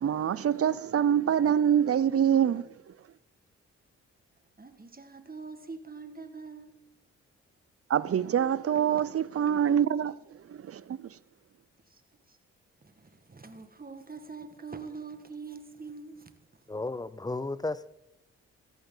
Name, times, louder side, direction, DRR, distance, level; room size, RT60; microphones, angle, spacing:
voice 1, 0.0-2.7 7.9-11.1, right 9 dB, 45° right, 0.7 m, -25 dB
voice 2, 4.6-6.8 11.9-12.0 12.3-12.4 12.8-16.3, right 4 dB, 25° right, 1.8 m, -44 dB
voice 3, 16.7-17.9, left 2 dB, 10° left, 0.6 m, -33 dB
16.0 x 14.0 x 4.0 m
hypercardioid pair, 40°, 32 cm